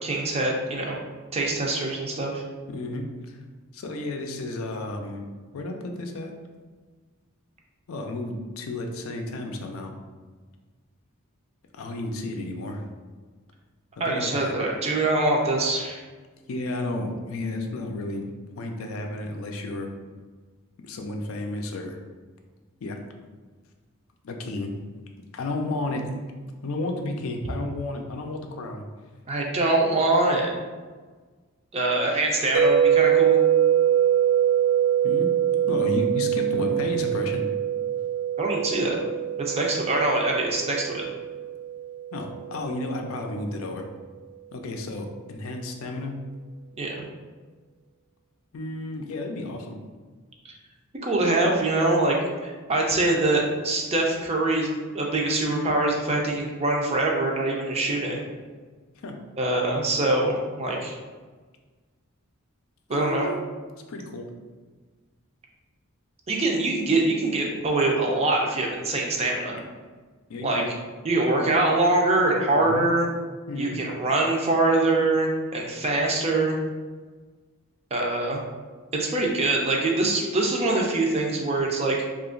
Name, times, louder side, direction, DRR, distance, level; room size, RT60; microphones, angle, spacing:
voice 1, 0.0-1.0 1.3-2.4 14.0-16.0 29.3-30.5 31.7-33.4 38.4-39.0 39.4-41.0 46.8-46.9 50.4-50.5 51.0-58.2 59.4-60.9 62.9-63.3 66.3-69.6 70.4-70.6 71.0-73.1 73.6-76.6 77.9-78.4 78.9-82.1, right 2 dB, 30° right, -1 dB, 0.5 m, -24 dB
voice 2, 2.7-3.4 3.7-5.2 5.5-6.3 7.9-9.9 11.7-12.8 14.0-14.8 16.5-18.3 18.6-19.9 20.8-22.0 22.8-23.0 24.2-24.7 25.3-26.1 26.6-28.8 35.0-35.3 35.7-37.4 42.1-43.8 44.5-46.2 48.5-49.8 59.0-59.2 62.9-63.4 63.9-64.3 70.3-70.7 72.6-72.8 73.5-73.8, left 2 dB, 70° left, 4 dB, 0.4 m, -32 dB
sound 1, 32.5-42.6, right 9 dB, 85° right, 0.5 m, -23 dB
2.9 x 2.4 x 3.7 m, 1.4 s
head